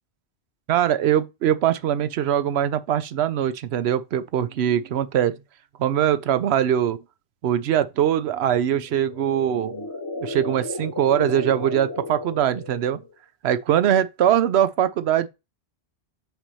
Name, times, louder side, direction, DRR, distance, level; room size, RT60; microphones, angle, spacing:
voice 1, 0.7-5.4 5.8-7.0 7.4-9.9 10.2-13.0 13.4-15.3, right 10 dB, 80° right, 0.9 m, -22 dB
sound 1, 8.8-13.1, left 2 dB, 25° left, 0.7 m, -34 dB
5.8 x 3.4 x 5.5 m
omnidirectional pair, 1.1 m